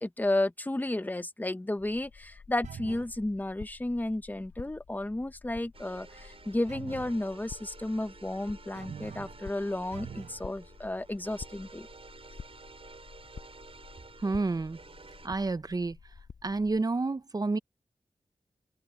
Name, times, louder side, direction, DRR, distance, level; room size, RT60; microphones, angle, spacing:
voice 1, 0.0-11.9, left 1 dB, 15° left, 0.9 m, -32 dB
sound 1, 1.8-16.8, left 5 dB, 90° left, 5.6 m, -50 dB
sound 2, 2.6-3.2 6.7-7.2 8.8-9.4 9.9-10.4, right 8 dB, 85° right, 0.6 m, -44 dB
sound 3, 5.7-15.3, right 4 dB, 55° right, 6.5 m, -52 dB
voice 2, 14.2-14.8 15.2-16.0 16.4-17.6, right 3 dB, 35° right, 0.7 m, -29 dB
open air
wide cardioid pair, 85°, 12 cm